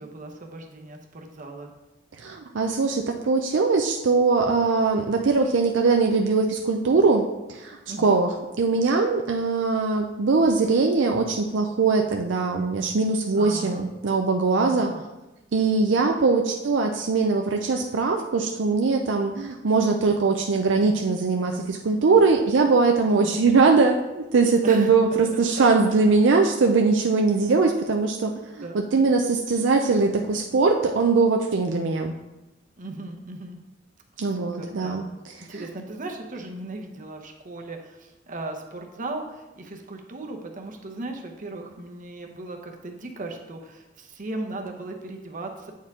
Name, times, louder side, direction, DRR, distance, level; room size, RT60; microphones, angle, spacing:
voice 1, 0.0-1.7 7.8-8.2 13.3-13.8 14.6-15.0 23.2-23.4 24.6-25.2 25.6-25.7 28.6-28.8 32.8-33.6 34.2-35.1 35.5-45.7, right 2 dB, 45° right, 3 dB, 0.9 m, -37 dB
voice 2, 2.2-8.3 8.6-14.9 15.5-32.1 34.2-35.5, right 4 dB, 70° right, 3 dB, 0.5 m, -21 dB
8.4 x 4.6 x 3.6 m, 1.0 s
head